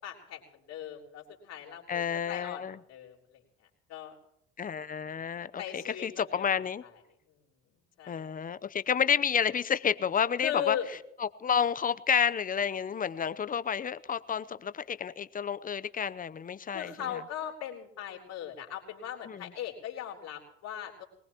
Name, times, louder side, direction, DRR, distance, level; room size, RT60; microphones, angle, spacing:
voice 1, 0.0-3.4 3.9-4.2 5.6-6.5 6.8-6.9 8.0-8.3 10.4-10.9 16.7-21.0, left 10 dB, 60° left, 0 dB, 3.8 m, -38 dB
voice 2, 1.9-2.8 4.6-6.8 8.1-10.8 11.2-16.9 19.3-19.5, left 7 dB, 30° left, 15 dB, 0.8 m, -30 dB
22.0 x 19.0 x 3.0 m, 0.78 s
hypercardioid pair, 70°, 30 cm